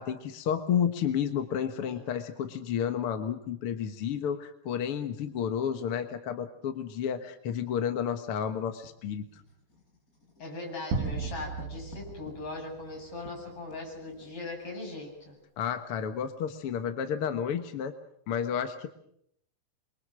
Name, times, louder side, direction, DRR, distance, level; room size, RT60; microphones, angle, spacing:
voice 1, 0.0-9.4 15.6-17.9 18.3-18.9, left 8 dB, 55° left, 8 dB, 1.6 m, -31 dB
Writing, 8.8-14.8, left 1 dB, 20° left, 6.5 m, -51 dB
voice 2, 10.4-15.4, left 2 dB, 40° left, 0 dB, 8.9 m, -39 dB
sound 1, 10.9-13.5, right 4 dB, 75° right, 3.7 m, -35 dB
28.0 x 23.5 x 6.2 m, 0.71 s
omnidirectional pair, 4.1 m